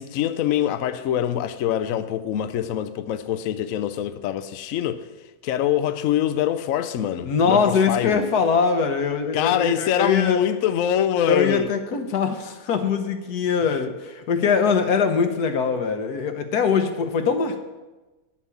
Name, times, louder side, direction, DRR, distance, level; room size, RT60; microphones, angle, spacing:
voice 1, 0.0-5.0 5.4-8.2 9.3-11.7, left 10 dB, 70° left, 0.9 m, -24 dB
voice 2, 7.3-10.4 11.2-17.6, left 5 dB, 90° left, 1.5 m, -22 dB
9.7 x 7.3 x 7.0 m
omnidirectional pair, 1.6 m